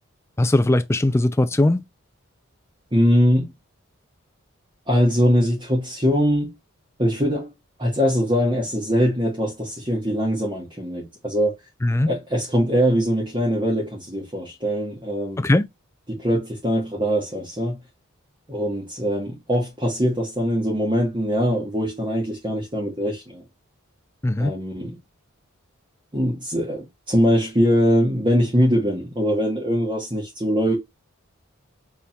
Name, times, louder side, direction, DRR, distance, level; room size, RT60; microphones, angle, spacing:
voice 1, 0.4-1.8 11.8-12.1 15.4-15.7 24.2-24.5, left 1 dB, 10° left, 0.3 m, -19 dB
voice 2, 2.9-3.5 4.9-6.5 7.0-7.5 7.8-11.5 12.1-15.5 16.1-17.8 18.5-23.4 24.4-25.0 26.1-30.7, equal, 25° right, 1.3 m, -22 dB
4.2 x 3.6 x 2.3 m
head